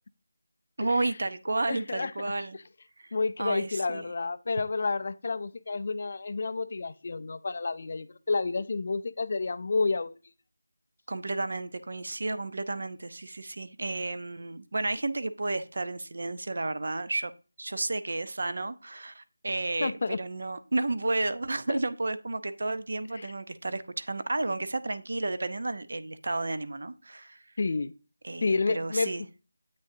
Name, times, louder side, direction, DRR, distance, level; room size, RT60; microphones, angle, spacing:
voice 1, 0.8-2.6 3.0-4.1 11.1-17.3 17.6-27.4 28.2-29.3, right 2 dB, 50° right, 0.6 m, -32 dB
voice 2, 1.6-2.1 3.1-10.1 19.8-20.2 23.2-23.3 27.6-27.9 28.4-29.1, left 3 dB, 35° left, 0.4 m, -30 dB
8.3 x 6.4 x 2.7 m
figure-of-eight pair, 175°, 0 cm